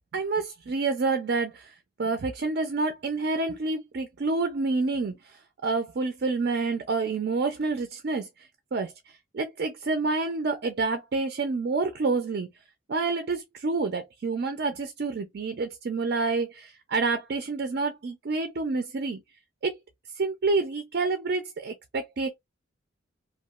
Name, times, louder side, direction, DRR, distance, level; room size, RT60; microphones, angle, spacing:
voice 1, 0.1-12.5 12.9-19.2 19.6-19.7 20.2-22.3, right 3 dB, 50° right, 0.4 m, -28 dB
2.9 x 2.3 x 2.3 m
head